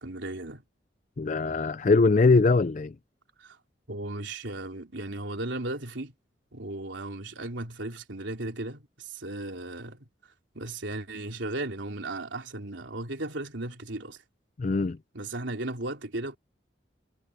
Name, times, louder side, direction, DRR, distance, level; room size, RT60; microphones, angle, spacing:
voice 1, 0.0-0.6 3.4-3.6 3.9-6.1 6.5-10.0 10.5-14.2 15.1-16.4, right 2 dB, 85° right, 3.4 m, -36 dB
voice 2, 1.2-2.9 14.6-15.0, left 3 dB, 40° left, 0.4 m, -22 dB
head